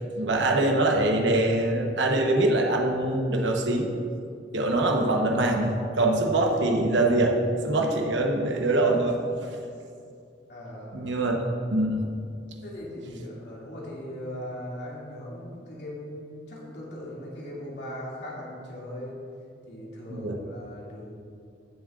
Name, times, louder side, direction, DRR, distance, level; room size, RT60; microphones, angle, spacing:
voice 1, 0.2-3.9 4.5-7.4 7.6-9.2 10.9-11.4 11.7-12.0 20.1-20.4, right 2 dB, 90° right, 1 dB, 1.1 m, -23 dB
voice 2, 10.5-11.5 12.6-19.2 19.7-21.1, left 1 dB, 70° left, -5 dB, 2.4 m, -39 dB
16.5 x 7.4 x 2.5 m, 2.4 s
head